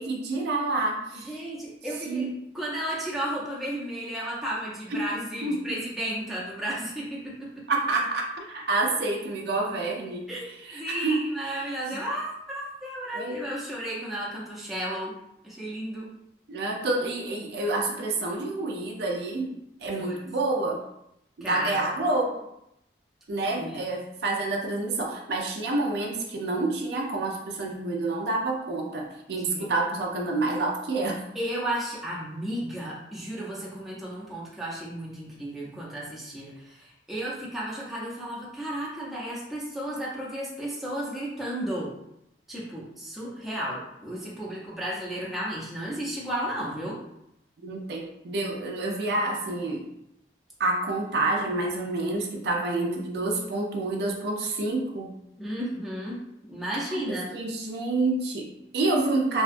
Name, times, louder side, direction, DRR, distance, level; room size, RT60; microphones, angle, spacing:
voice 1, 0.0-1.4 2.1-2.3 4.9-5.1 5.4-5.7 7.7-11.7 13.1-13.5 16.5-19.5 19.8-20.8 21.4-22.4 23.3-31.2 47.6-49.9 50.6-55.1 56.9-59.4, right 2 dB, 60° right, 0 dB, 0.4 m, -28 dB
voice 2, 1.1-2.3 2.5-7.6 10.3-15.1 15.4-16.1 19.9-20.2 21.4-21.8 23.6-23.8 29.3-29.7 31.3-41.9 42.5-47.0 55.4-56.2 56.5-57.3, right 1 dB, ahead, -6 dB, 0.5 m, -33 dB
2.7 x 2.2 x 2.5 m, 0.82 s
head